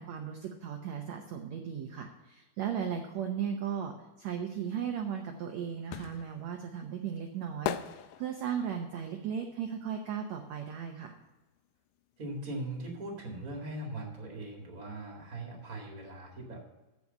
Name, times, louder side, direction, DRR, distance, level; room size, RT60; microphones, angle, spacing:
voice 1, 0.0-11.1, right 8 dB, 85° right, 4 dB, 1.5 m, -36 dB
sound 1, 5.0-10.9 11.2-12.8 13.0-13.1, left 12 dB, 85° left, 2.0 m, -41 dB
voice 2, 12.2-16.7, right 1 dB, 35° right, 0 dB, 1.5 m, -40 dB
14.5 x 4.9 x 5.3 m, 1.1 s
omnidirectional pair, 4.4 m